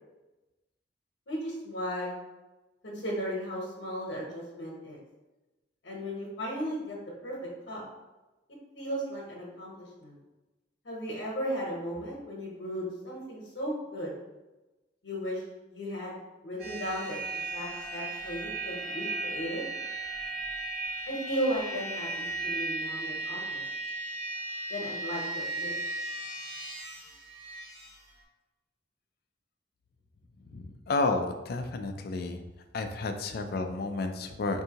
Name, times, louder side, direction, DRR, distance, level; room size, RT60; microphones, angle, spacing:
voice 1, 1.3-2.2 2.8-5.0 5.8-7.0 7.2-7.3 7.7-7.8 8.7-10.2 10.8-14.1 15.0-15.4 15.7-16.2 16.4-19.6 21.1-23.6 24.7-25.7, equal, 80° left, -3 dB, 0.9 m, -35 dB
sound 1, 16.6-28.0, right 2 dB, 50° right, 1.1 m, -36 dB
voice 2, 30.5-32.4 32.7-34.6, left 3 dB, 55° left, 7 dB, 0.4 m, -31 dB
4.5 x 2.6 x 2.8 m, 1.1 s
head